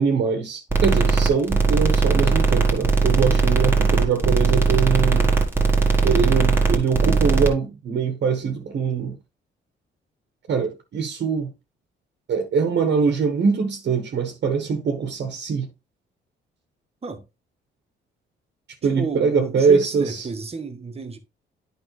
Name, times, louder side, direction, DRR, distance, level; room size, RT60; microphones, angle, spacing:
voice 1, 0.0-5.4 6.0-9.2 10.5-11.5 12.3-15.7 18.8-20.3, right 6 dB, 60° right, 1.3 m, -23 dB
sound 1, 0.7-7.5, right 4 dB, 10° right, 1.7 m, -19 dB
voice 2, 3.1-3.4 17.0-17.2 19.0-21.2, right 4 dB, 30° right, 1.4 m, -32 dB
9.2 x 5.1 x 3.2 m
cardioid pair, 90°, 20 cm